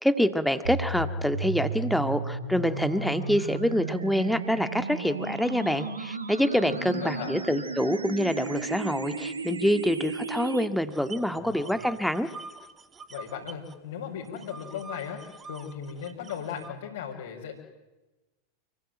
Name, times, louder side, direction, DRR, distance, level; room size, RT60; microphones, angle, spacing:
voice 1, 0.0-12.3, equal, ahead, 10 dB, 1.9 m, -26 dB
sound 1, 0.6-10.7, right 4 dB, 75° right, 2.0 m, -34 dB
voice 2, 6.7-7.3 11.2-11.8 13.1-17.5, left 8 dB, 60° left, -2 dB, 5.1 m, -37 dB
sound 2, 10.9-13.8 14.0-16.7, right 4 dB, 20° right, 2.0 m, -45 dB
29.0 x 22.0 x 9.1 m, 1.1 s
figure-of-eight pair, 90°, 0 cm